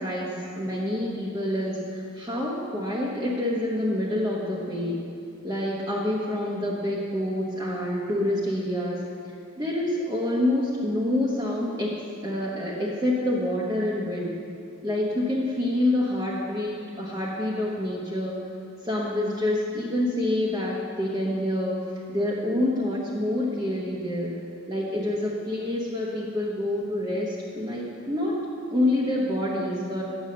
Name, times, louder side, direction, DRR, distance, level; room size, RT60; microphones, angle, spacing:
voice 1, 0.0-5.0 5.4-9.0 9.6-14.4 14.8-18.3 18.8-21.8 22.1-24.4 24.7-28.4 28.7-30.0, left 1 dB, 20° right, -6 dB, 1.0 m, -27 dB
8.5 x 7.1 x 6.5 m, 2.3 s
head